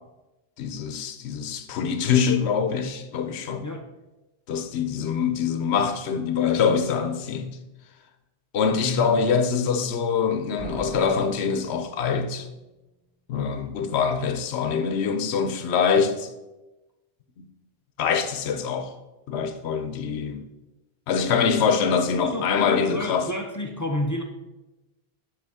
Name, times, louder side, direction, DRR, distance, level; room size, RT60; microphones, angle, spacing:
voice 1, 0.6-3.6 4.5-7.6 8.5-12.5 13.3-16.3 17.4-17.5 18.0-18.9 19.3-20.5 21.1-23.3, left 6 dB, 75° left, 0.9 m, -24 dB
voice 2, 8.8-9.2 22.2-24.2, left 1 dB, 30° left, 0.3 m, -30 dB
Slam, 10.6-12.5, right 2 dB, 85° right, 2.0 m, -39 dB
6.8 x 6.1 x 3.6 m
omnidirectional pair, 1.1 m